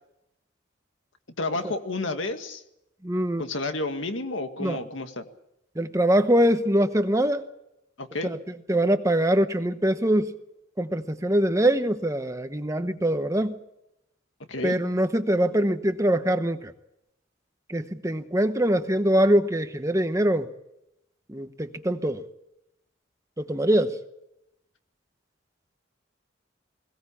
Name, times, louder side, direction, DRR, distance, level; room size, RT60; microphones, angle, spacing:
voice 1, 1.4-2.6 3.4-5.2 8.0-8.3 14.5-14.8, left 2 dB, 75° left, 7 dB, 2.0 m, -30 dB
voice 2, 3.0-3.5 4.6-4.8 5.7-7.4 8.2-10.3 10.8-13.6 14.6-16.7 17.7-20.5 21.3-22.2 23.4-24.0, right 1 dB, 15° right, 9 dB, 1.0 m, -23 dB
21.5 x 17.5 x 8.5 m, 0.85 s
head